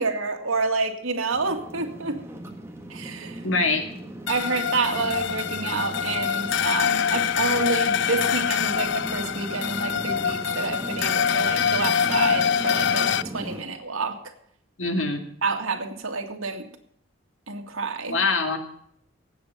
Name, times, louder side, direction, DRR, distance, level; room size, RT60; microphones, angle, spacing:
voice 1, 0.0-2.2 2.9-3.4 4.3-14.2 15.4-16.7 17.5-18.2, right 4 dB, 85° right, 4 dB, 2.2 m, -28 dB
sound 1, 1.3-13.6, right 1 dB, 10° right, 1.6 m, -37 dB
voice 2, 3.4-3.9 14.8-15.2 18.1-18.6, left 3 dB, 70° left, 5 dB, 2.2 m, -23 dB
sound 2, 4.3-13.2, left 8 dB, 55° left, 0.4 m, -25 dB
18.0 x 8.1 x 5.8 m, 0.69 s
head